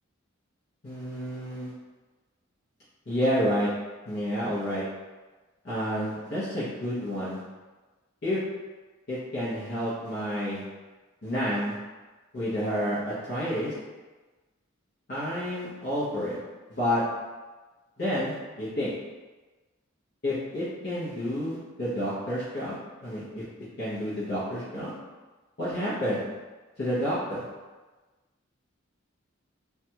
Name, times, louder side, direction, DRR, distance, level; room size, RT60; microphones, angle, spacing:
voice 1, 0.8-1.7 3.1-3.7 4.0-4.8 5.6-7.4 8.2-8.4 9.1-10.6 11.2-11.8 12.3-13.7 15.1-16.4 16.7-17.0 18.0-18.9 20.2-23.4 23.8-24.9 25.6-26.2 26.8-27.4, equal, 50° left, -11 dB, 0.8 m, -29 dB
3.3 x 2.3 x 2.8 m, 1.3 s
head